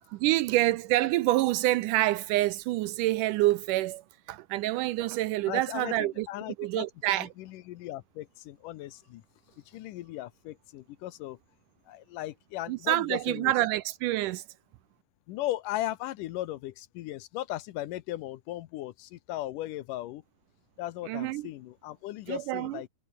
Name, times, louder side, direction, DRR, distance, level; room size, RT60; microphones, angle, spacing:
voice 1, 0.1-4.0 4.3-6.3 6.6-7.3 12.7-14.4 21.1-21.5 22.3-22.8, right 16 dB, 80° right, 2.0 m, -27 dB
voice 2, 5.5-6.9 7.2-9.2 9.7-11.4 11.9-13.5 15.3-20.2 20.8-22.9, left 15 dB, 75° left, 2.3 m, -37 dB
omnidirectional pair, 4.0 m